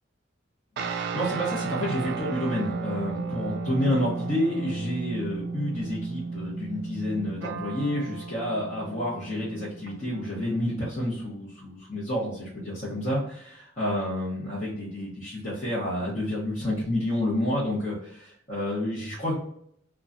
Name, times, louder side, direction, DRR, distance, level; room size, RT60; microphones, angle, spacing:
voice 1, 0.8-19.3, left 1 dB, 35° left, -9 dB, 0.9 m, -29 dB
sound 1, 0.8-10.5, right 4 dB, 60° right, 0.4 m, -34 dB
3.0 x 2.3 x 2.5 m, 0.69 s
head